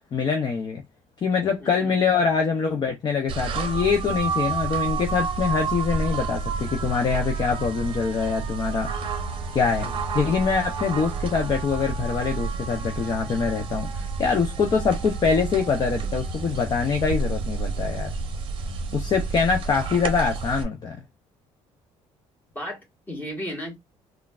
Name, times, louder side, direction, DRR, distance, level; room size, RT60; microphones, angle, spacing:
voice 1, 0.1-0.8 1.2-8.9 9.5-9.9 10.1-18.2 18.9-21.0, left 5 dB, 35° left, 0.6 m, -24 dB
voice 2, 1.6-2.0 9.8-10.0 22.5-23.8, equal, 15° left, 1.6 m, -35 dB
sound 1, 3.3-20.6, right 4 dB, 45° right, 0.7 m, -30 dB
3.7 x 2.2 x 2.4 m
cardioid pair, 125°, 12 cm